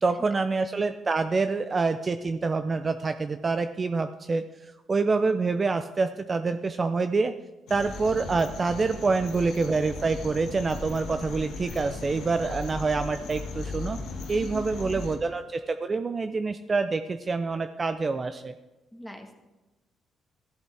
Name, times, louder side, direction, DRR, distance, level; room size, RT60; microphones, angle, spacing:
voice 1, 0.0-7.3 7.7-14.0 14.3-18.5, right 4 dB, 35° right, 9 dB, 0.4 m, -26 dB
sound 1, 7.7-15.2, left 3 dB, 85° left, 1.4 m, -37 dB
voice 2, 14.4-15.0 18.9-19.4, equal, 5° left, 4 dB, 1.4 m, -42 dB
14.0 x 8.0 x 3.3 m, 1.1 s
cardioid pair, 90°, 0 cm